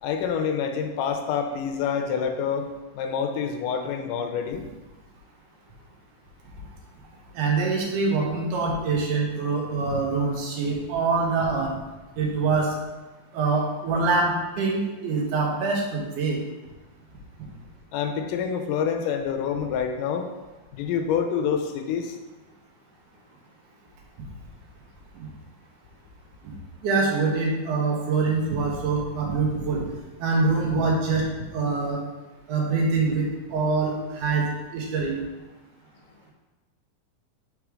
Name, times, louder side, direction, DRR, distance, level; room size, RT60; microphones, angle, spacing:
voice 1, 0.0-2.7 2.9-4.6 17.9-20.3 20.7-22.2, left 7 dB, 85° left, 5 dB, 2.1 m, -27 dB
voice 2, 7.3-11.7 12.2-12.7 13.3-16.4 25.2-25.3 26.4-26.5 26.8-29.8 30.2-31.2 31.5-32.0 32.5-34.4 34.7-35.2, right 4 dB, 80° right, -2 dB, 2.5 m, -24 dB
6.1 x 3.5 x 4.8 m, 1.1 s
omnidirectional pair, 3.7 m